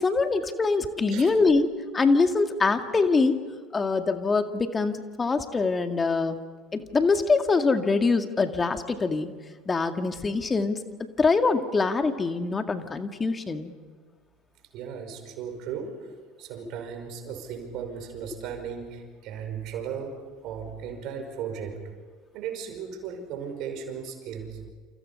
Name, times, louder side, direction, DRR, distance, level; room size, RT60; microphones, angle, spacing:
voice 1, 0.0-3.4 3.7-6.4 6.7-9.3 9.7-10.8 11.2-13.7, left 4 dB, 25° left, 7 dB, 2.2 m, -24 dB
voice 2, 14.7-16.1 16.4-21.8 22.3-24.6, right 7 dB, 55° right, 5 dB, 5.5 m, -36 dB
29.0 x 28.5 x 5.6 m, 1.5 s
hypercardioid pair, 70°, 0 cm